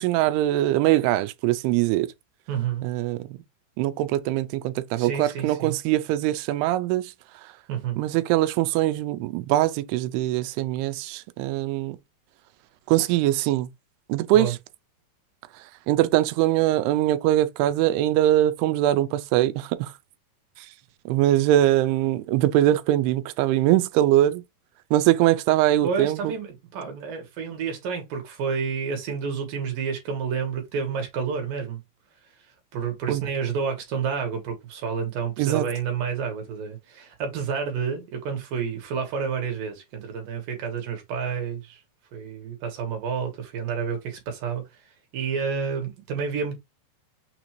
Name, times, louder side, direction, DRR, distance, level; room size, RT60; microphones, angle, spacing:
voice 1, 0.0-2.1 2.8-3.2 3.8-7.1 8.0-12.0 12.9-13.7 14.1-14.6 15.9-19.9 21.1-24.4 24.9-26.3 33.1-33.2 35.4-35.7, right 14 dB, 85° right, 2.6 m, -22 dB
voice 2, 2.5-2.9 5.0-5.8 7.7-8.0 14.3-14.5 25.8-31.8 32.7-41.8 42.1-44.6 45.1-46.5, right 6 dB, 70° right, 2.7 m, -29 dB
6.4 x 2.6 x 2.9 m
omnidirectional pair, 4.6 m